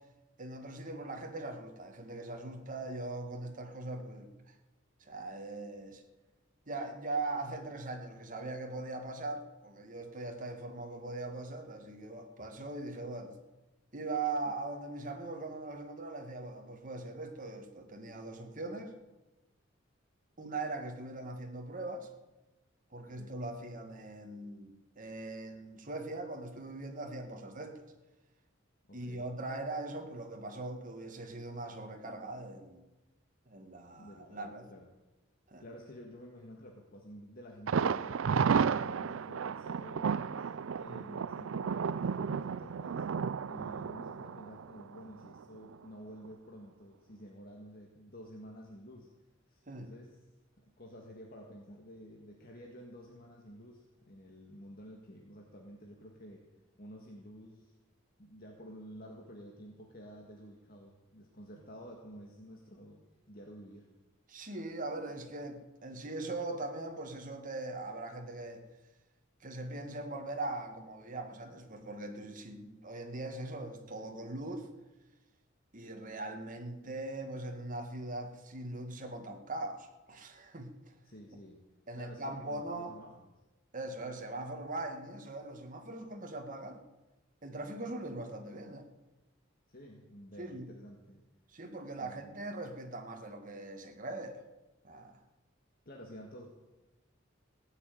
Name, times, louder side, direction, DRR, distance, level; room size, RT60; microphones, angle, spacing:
voice 1, 0.4-4.5 5.0-6.0 6.7-13.4 13.9-18.9 20.4-22.1 22.9-27.8 28.9-32.8 33.5-34.7 35.5-35.6 40.9-41.0 49.7-49.9 64.3-68.6 69.4-74.7 75.7-80.9 81.9-83.0 83.7-86.8 87.4-88.9 90.4-90.7 91.5-94.4 94.8-95.2, right 2 dB, 40° right, 1.9 m, -41 dB
voice 2, 28.9-29.3 34.0-34.9 35.6-38.5 38.8-40.5 40.8-43.1 43.4-49.1 49.5-50.2 50.6-56.5 56.8-57.8 58.2-63.9 81.0-81.6 81.9-83.3 89.7-91.2 92.0-92.5 95.9-96.5, equal, 50° left, 1.8 m, -51 dB
Thunder, 37.7-45.4 45.7-45.8 46.2-46.3, right 6 dB, 80° right, 0.4 m, -33 dB
17.0 x 7.4 x 9.2 m
head